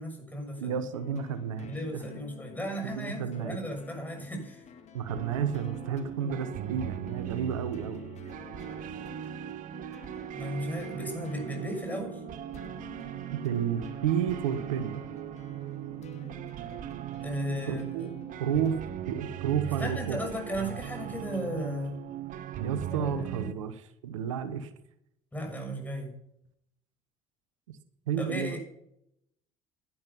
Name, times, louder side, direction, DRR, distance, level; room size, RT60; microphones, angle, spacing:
voice 1, 0.0-0.8 1.7-4.6 10.3-12.2 17.2-18.1 19.7-22.0 22.9-23.5 25.3-26.1 28.2-28.6, equal, 10° left, 1 dB, 6.9 m, -35 dB
voice 2, 0.6-2.0 2.8-3.6 4.9-8.0 13.4-15.0 17.7-18.1 18.4-18.8 19.1-20.2 22.6-24.7 28.1-28.6, right 8 dB, 90° right, 13 dB, 1.0 m, -31 dB
sound 1, 0.8-19.6, left 7 dB, 45° left, 2.1 m, -51 dB
sound 2, 5.1-23.5, right 12 dB, 55° right, 1.0 m, -39 dB
12.0 x 11.0 x 5.7 m, 0.78 s
hypercardioid pair, 70°, 16 cm